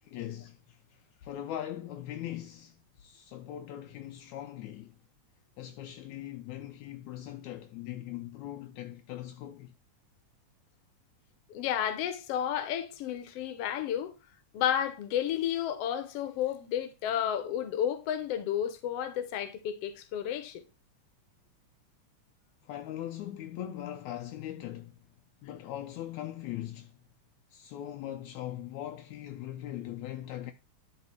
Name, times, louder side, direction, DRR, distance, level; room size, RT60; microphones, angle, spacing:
voice 1, 0.0-5.0 5.6-9.7 22.6-25.0 25.4-27.0 27.5-30.5, left 12 dB, 80° left, 1.9 m, -40 dB
voice 2, 11.5-14.1 14.5-20.6, left 10 dB, 60° left, 1.8 m, -32 dB
11.0 x 4.2 x 4.5 m
omnidirectional pair, 3.7 m